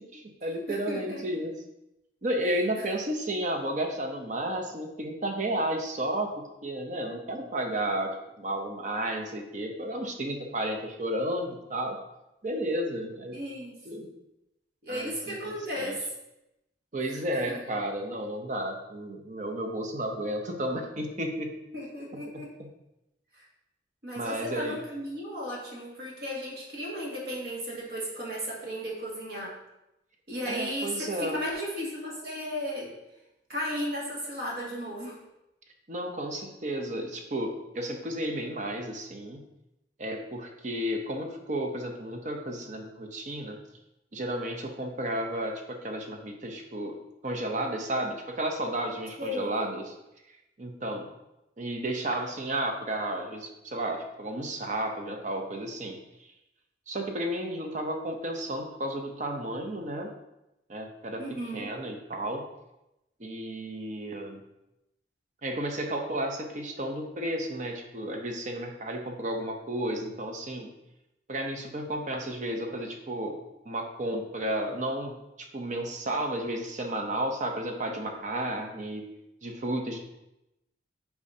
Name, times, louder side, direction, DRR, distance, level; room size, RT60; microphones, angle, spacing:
voice 1, 0.1-1.5 2.2-12.0 12.4-13.4 13.8-14.1 14.9-16.0 16.9-21.5 22.1-22.7 24.2-24.8 30.5-31.4 35.9-39.4 40.0-43.6 44.1-47.0 47.2-49.9 50.6-51.1 51.6-56.0 56.9-60.1 60.7-62.4 63.2-64.4 65.4-70.7 71.3-73.4 73.7-79.1 79.4-80.0, right 1 dB, 45° right, 3 dB, 0.7 m, -32 dB
voice 2, 0.7-1.4 13.3-13.8 14.8-16.1 17.1-17.2 17.5-17.6 21.7-22.5 24.0-29.5 30.3-32.9 33.5-35.2 49.2-49.7 61.2-61.7, equal, 65° right, -4 dB, 2.0 m, -35 dB
8.4 x 4.7 x 2.8 m, 0.90 s
head